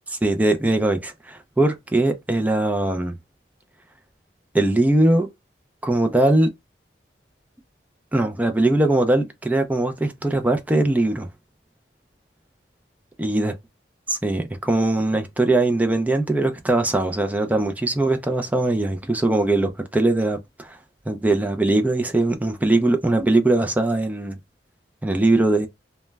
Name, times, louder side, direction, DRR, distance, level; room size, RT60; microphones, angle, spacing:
voice 1, 0.1-3.2 4.5-5.3 5.8-6.5 8.1-11.3 13.2-13.5 14.1-20.8 21.1-24.4 25.0-25.7, right 2 dB, 10° right, 0.3 m, -21 dB
2.1 x 2.0 x 3.3 m
head